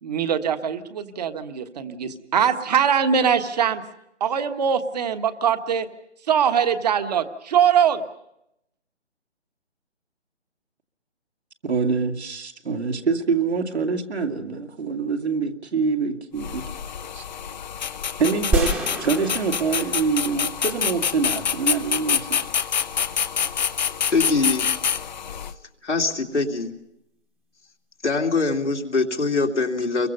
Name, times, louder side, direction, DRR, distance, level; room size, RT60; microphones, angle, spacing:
voice 1, 0.0-3.8 4.2-5.9 6.2-8.0, right 8 dB, 35° right, 9 dB, 1.4 m, -22 dB
voice 2, 11.6-16.7 17.1-17.2 18.2-18.7 19.0-22.4, right 5 dB, 65° right, 3 dB, 2.4 m, -25 dB
sound 1, 16.4-25.5, left 7 dB, 40° left, 0.8 m, -27 dB
sound 2, 18.5-20.8, right 1 dB, 5° right, 1.2 m, -28 dB
voice 3, 24.0-24.7 25.8-26.7 28.0-30.1, left 3 dB, 85° left, 2 dB, 2.9 m, -23 dB
27.0 x 23.0 x 5.5 m, 0.81 s
figure-of-eight pair, 150°, 35 cm